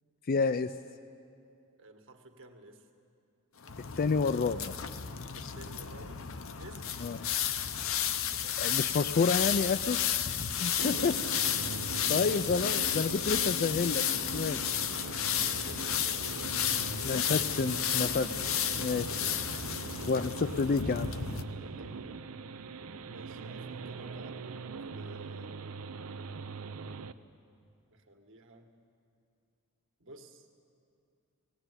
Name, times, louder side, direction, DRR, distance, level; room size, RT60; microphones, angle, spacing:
voice 1, 0.3-0.7 4.0-4.8 7.0-7.2 8.6-10.0 10.6-11.2 12.1-14.6 17.0-18.3 18.8-19.0 20.1-21.1, left 4 dB, 45° left, 11 dB, 0.4 m, -29 dB
voice 2, 1.8-2.9 5.3-6.2 6.6-7.1 10.5-11.4 15.4-17.0 18.8-20.1 21.8-22.0 23.1-24.4 24.9-25.6 27.9-28.7 30.0-30.5, right 1 dB, 65° right, 4 dB, 1.8 m, -53 dB
sound 1, 3.6-21.4, left 9 dB, 70° left, 0.9 m, -32 dB
sound 2, 10.8-27.1, right 4 dB, 80° right, 0.7 m, -41 dB
18.5 x 17.0 x 9.7 m, 2.4 s
head